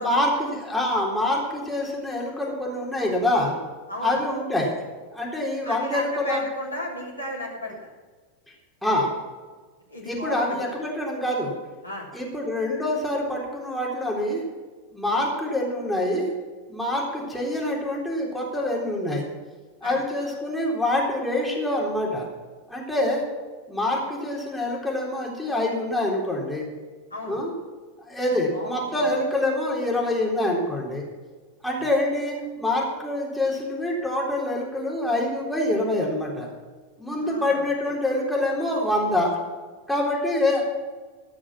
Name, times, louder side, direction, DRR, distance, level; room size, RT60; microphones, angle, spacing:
voice 1, 0.0-3.6 4.0-4.8 5.1-6.4 8.8-9.1 10.0-11.5 12.1-14.4 14.9-16.3 16.7-19.3 19.8-22.3 22.7-23.2 23.7-26.7 27.3-27.5 28.1-31.0 31.6-36.5 37.0-39.4 39.9-40.6, left 1 dB, 5° left, -3 dB, 3.6 m, -25 dB
voice 2, 5.6-7.9 9.9-10.6 11.8-12.1 19.8-20.0 27.1-27.4 28.5-28.8 37.2-37.6, equal, 85° left, -2 dB, 3.6 m, -33 dB
16.0 x 6.2 x 7.3 m, 1.4 s
figure-of-eight pair, 90°, 0 cm